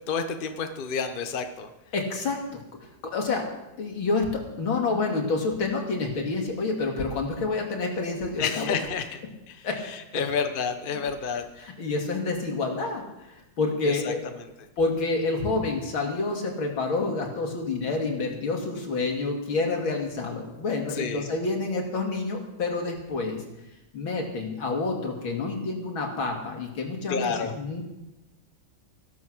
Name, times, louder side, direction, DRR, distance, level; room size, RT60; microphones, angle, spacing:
voice 1, 0.1-1.7 8.4-9.2 9.5-11.4 13.8-14.5 20.9-21.3 27.1-27.5, left 6 dB, 35° left, 7 dB, 1.0 m, -30 dB
voice 2, 1.9-2.6 3.0-3.5 3.8-8.8 9.6-9.8 11.6-14.2 14.8-23.4 23.9-27.8, left 3 dB, 80° left, 1 dB, 3.2 m, -28 dB
15.5 x 12.0 x 6.3 m, 0.96 s
omnidirectional pair, 2.2 m